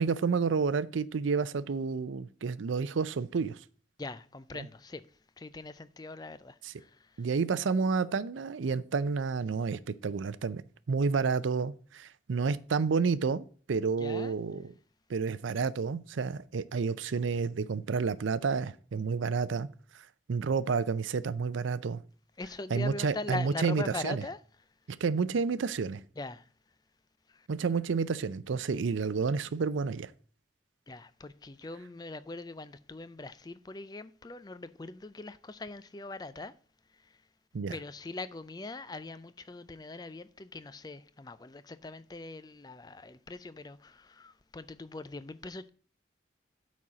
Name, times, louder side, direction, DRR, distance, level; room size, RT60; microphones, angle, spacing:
voice 1, 0.0-3.6 4.5-4.7 6.6-6.7 7.2-10.6 10.9-14.7 15.1-19.7 20.3-22.0 22.7-24.2 24.9-26.0 27.5-30.1 37.5-37.8, right 5 dB, 85° right, 0.5 m, -30 dB
voice 2, 4.0-5.0 5.4-6.9 14.0-14.4 22.4-24.4 26.2-26.4 30.9-36.5 37.7-45.7, left 2 dB, 20° left, 0.4 m, -41 dB
8.7 x 4.2 x 6.1 m
head